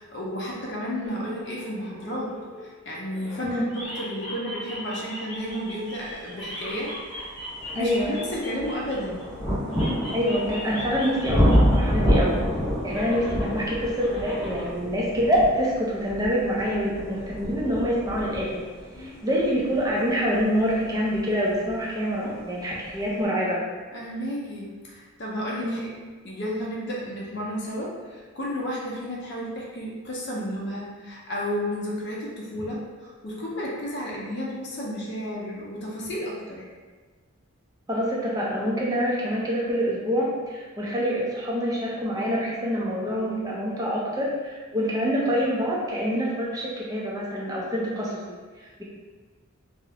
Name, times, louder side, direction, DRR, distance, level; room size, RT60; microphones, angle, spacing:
voice 1, 0.0-7.3 7.7-9.3 18.9-19.2 23.9-25.9 26.2-36.7 44.7-44.9, equal, 55° left, -4 dB, 0.5 m, -32 dB
sound 1, 1.0-3.4 3.7-9.2 9.7-11.8 12.1-14.7, equal, 70° left, 0.9 m, -39 dB
sound 2, 6.5-6.6 7.2-21.8 22.7-22.8, equal, 15° left, 0.9 m, -28 dB
voice 2, 7.8-8.2 10.1-12.4 12.8-18.6 19.0-23.6 25.6-25.8 37.9-48.4, equal, 15° right, -5 dB, 0.4 m, -26 dB
2.4 x 2.0 x 2.8 m, 1.4 s
head